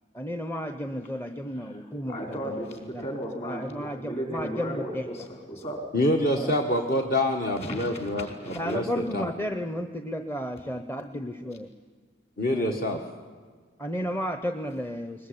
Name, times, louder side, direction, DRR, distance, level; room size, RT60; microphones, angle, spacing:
voice 1, 0.1-2.6 2.9-3.1 3.4-5.1 6.4-6.6 8.5-11.7 12.5-12.8 13.8-15.3, equal, 10° left, 7 dB, 0.8 m, -33 dB
voice 2, 2.1-5.9 7.6-8.8, equal, 35° left, 2 dB, 5.0 m, -35 dB
voice 3, 5.9-9.3 11.1-11.3 12.4-13.0, left 1 dB, 50° left, 2 dB, 1.6 m, -26 dB
21.5 x 21.0 x 9.9 m, 1.6 s
head